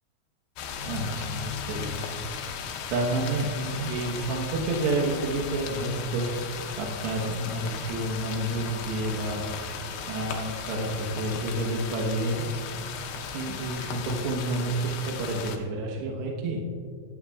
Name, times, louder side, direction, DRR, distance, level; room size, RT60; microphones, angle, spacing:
sound 1, 0.6-15.6, left 7 dB, 85° left, 2.3 m, -36 dB
voice 1, 0.9-2.5 2.9-9.5 10.1-13.0 13.3-16.6, right 2 dB, 70° right, -1 dB, 2.9 m, -30 dB
18.0 x 10.5 x 2.4 m, 2.1 s
omnidirectional pair, 5.9 m